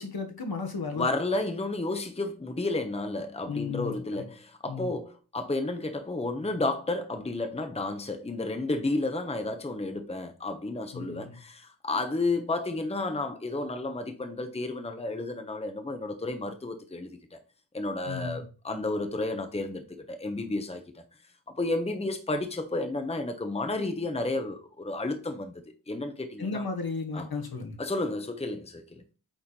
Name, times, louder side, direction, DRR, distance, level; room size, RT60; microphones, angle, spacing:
voice 1, 0.0-1.1 3.4-4.3 4.7-4.9 10.9-11.4 18.1-18.5 26.4-27.8, left 4 dB, 55° left, 1.7 m, -34 dB
voice 2, 0.9-17.4 17.7-21.0 21.5-26.7 27.1-27.3 27.8-29.0, left 2 dB, 15° left, 1.0 m, -32 dB
9.0 x 3.6 x 4.3 m
cardioid pair, 55°, 44 cm